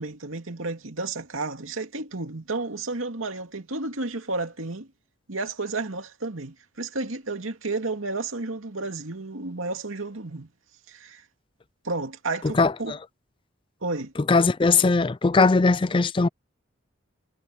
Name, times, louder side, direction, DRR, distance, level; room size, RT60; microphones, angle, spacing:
voice 1, 0.0-4.9 5.3-10.5 10.9-11.2 11.8-13.0 13.8-14.1, right 3 dB, 85° right, 2.5 m, -32 dB
voice 2, 12.6-13.0 14.3-16.3, left 4 dB, 25° left, 0.4 m, -20 dB
head